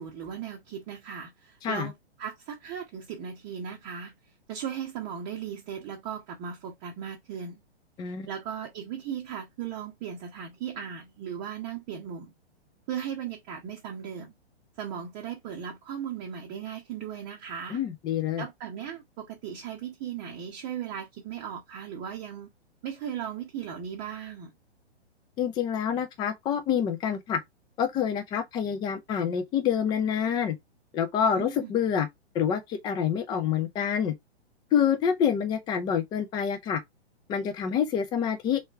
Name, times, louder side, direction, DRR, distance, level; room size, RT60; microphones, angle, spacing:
voice 1, 0.0-1.9 2.2-4.1 4.5-7.6 8.0-12.3 12.9-14.3 14.8-17.8 18.4-22.5 22.8-24.5 31.3-31.8, right 8 dB, 25° right, 0.9 m, -37 dB
voice 2, 17.7-18.4 25.4-27.4 27.8-30.5 30.9-32.1 32.3-34.1 34.7-36.8 37.3-38.6, left 8 dB, 15° left, 0.6 m, -27 dB
3.6 x 3.1 x 4.3 m
figure-of-eight pair, 115°, 33 cm